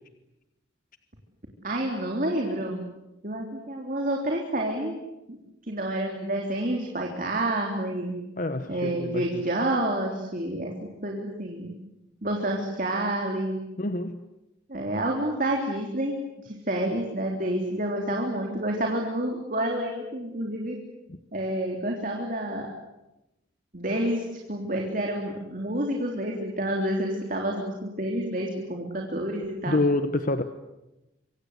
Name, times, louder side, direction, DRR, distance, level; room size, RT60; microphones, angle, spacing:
voice 1, 1.6-2.8 3.2-4.9 5.3-5.4 5.6-8.1 8.7-10.7 11.0-11.7 12.2-13.6 14.7-16.2 16.4-20.8 21.3-22.7 23.7-29.8, right 1 dB, 45° right, 1 dB, 3.6 m, -29 dB
voice 2, 8.4-9.4 13.8-14.2 21.1-21.2 29.6-30.4, left 2 dB, 45° left, 9 dB, 1.1 m, -27 dB
26.0 x 25.0 x 8.3 m, 0.94 s
head